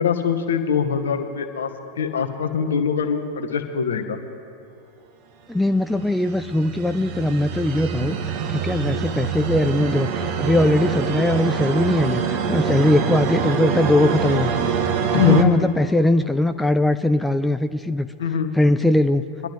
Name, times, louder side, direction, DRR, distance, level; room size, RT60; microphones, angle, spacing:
voice 1, 0.0-1.7 2.0-4.2 15.1-15.7 18.2-18.5, left 7 dB, 65° left, 7 dB, 1.1 m, -22 dB
voice 2, 5.5-18.1 18.5-19.3, left 1 dB, 5° left, 9 dB, 0.4 m, -21 dB
sound 1, 5.8-15.4, right 7 dB, 45° right, 0.9 m, -25 dB
23.0 x 11.5 x 3.1 m, 2.6 s
figure-of-eight pair, 90°, 0 cm